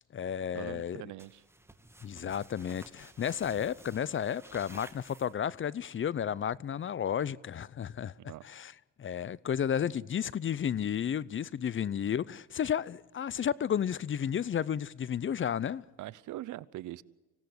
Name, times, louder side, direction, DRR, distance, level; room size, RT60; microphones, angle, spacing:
voice 1, 0.0-1.1 2.0-8.7 9.0-15.8, left 8 dB, 40° left, 0.7 m, -32 dB
voice 2, 0.5-1.4 8.2-8.4 16.0-17.0, right 15 dB, 80° right, 0.8 m, -42 dB
sound 1, 1.2-5.7, right 1 dB, 10° right, 2.0 m, -53 dB
25.5 x 17.0 x 7.9 m
cardioid pair, 90°, 30 cm